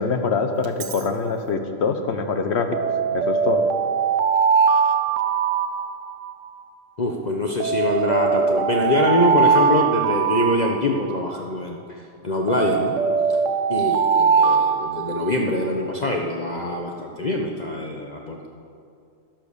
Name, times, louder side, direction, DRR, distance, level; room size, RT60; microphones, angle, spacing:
voice 1, 0.0-2.8 3.1-3.6, left 4 dB, 60° left, 7 dB, 1.2 m, -24 dB
Alarm, 0.6-1.0 2.7-6.5 7.6-11.4 12.5-15.7, right 6 dB, 85° right, 1.2 m, -21 dB
voice 2, 7.0-11.8 12.2-12.9 13.7-18.5, left 1 dB, 40° left, 1 dB, 0.9 m, -24 dB
12.0 x 10.5 x 6.6 m, 2.5 s
omnidirectional pair, 1.3 m